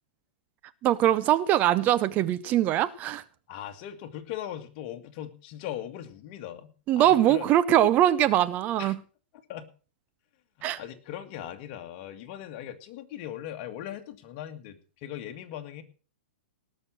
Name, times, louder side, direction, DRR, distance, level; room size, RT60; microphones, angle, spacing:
voice 1, 0.8-3.2 6.9-9.0 10.6-10.8, right 12 dB, 30° right, 0.6 m, -22 dB
voice 2, 3.5-7.5 8.8-8.9 9.3-9.7 10.6-15.8, left 11 dB, 40° left, 2.0 m, -39 dB
18.5 x 6.5 x 6.1 m
hypercardioid pair, 135°, 6 cm